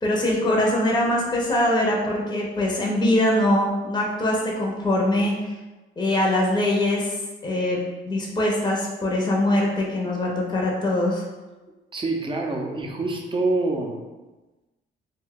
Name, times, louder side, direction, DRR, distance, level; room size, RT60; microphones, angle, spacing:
voice 1, 0.0-5.3 6.0-7.2 7.4-11.2, left 1 dB, 20° left, -2 dB, 0.6 m, -22 dB
voice 2, 11.9-14.0, right 2 dB, 25° right, 1 dB, 0.5 m, -26 dB
2.6 x 2.2 x 3.5 m, 1.2 s
cardioid pair, 90°, 20 cm